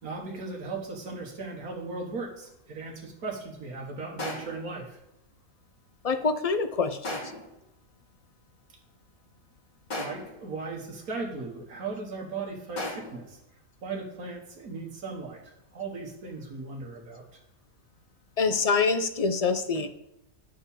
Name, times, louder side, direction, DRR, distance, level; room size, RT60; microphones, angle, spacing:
voice 1, 0.0-5.0 10.0-13.4 13.8-17.4 19.8-19.9, right 3 dB, 90° right, 0 dB, 1.9 m, -37 dB
sound 1, 4.2-4.7 7.0-7.6 9.9-10.4 12.8-13.3, left 1 dB, 75° left, 3.1 m, -36 dB
voice 2, 6.0-7.2 18.4-19.9, left 4 dB, 40° left, 9 dB, 0.5 m, -25 dB
10.5 x 4.5 x 7.1 m, 0.83 s
omnidirectional pair, 1.5 m